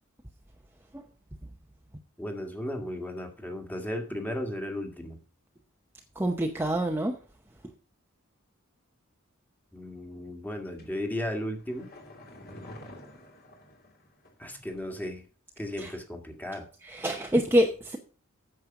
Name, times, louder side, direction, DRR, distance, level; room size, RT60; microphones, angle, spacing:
voice 1, 2.2-5.2 9.7-11.9 14.4-15.2 15.6-16.7, left 1 dB, 10° left, 4 dB, 1.8 m, -35 dB
voice 2, 6.2-7.2 15.8-15.9 16.8-18.0, equal, 10° right, 2 dB, 0.8 m, -26 dB
sound 1, 10.8-14.5 14.8-14.9, left 1 dB, 50° left, 2.7 m, -49 dB
9.4 x 6.7 x 5.9 m, 0.39 s
head